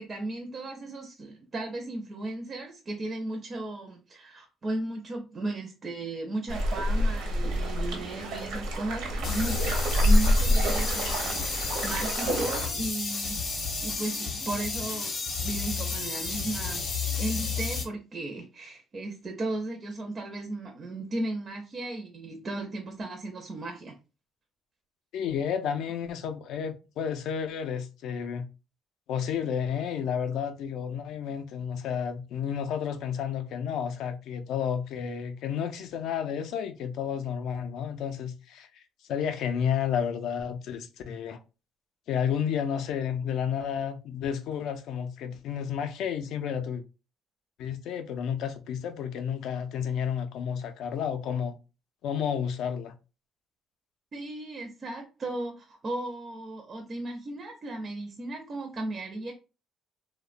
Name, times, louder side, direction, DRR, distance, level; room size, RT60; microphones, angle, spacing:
voice 1, 0.0-13.4 13.8-15.1 15.4-16.9 17.2-24.0 54.1-59.3, right 2 dB, 30° right, 0.4 m, -35 dB
sound 1, 6.5-12.7, equal, 90° right, 0.8 m, -27 dB
sound 2, 9.2-17.8, left 4 dB, 35° left, 0.7 m, -32 dB
voice 2, 25.1-28.5 29.1-38.8 39.1-41.4 42.1-46.8 47.6-51.6 52.0-52.9, left 8 dB, 70° left, 0.3 m, -31 dB
2.8 x 2.0 x 2.4 m
cardioid pair, 145°, 0 cm